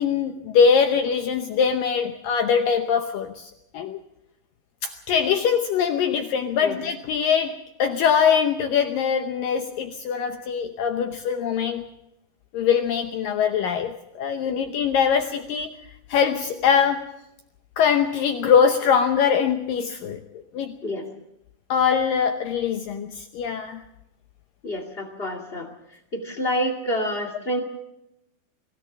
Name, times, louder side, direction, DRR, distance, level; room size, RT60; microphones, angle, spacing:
voice 1, 0.0-4.0 4.8-11.8 12.5-15.8 16.1-17.1 17.8-20.2 20.5-20.8 21.7-23.8, left 7 dB, 75° left, 6 dB, 2.0 m, -22 dB
voice 2, 24.6-25.7 26.1-27.6, equal, 30° left, 2 dB, 1.1 m, -28 dB
23.0 x 16.5 x 7.2 m, 0.85 s
omnidirectional pair, 5.1 m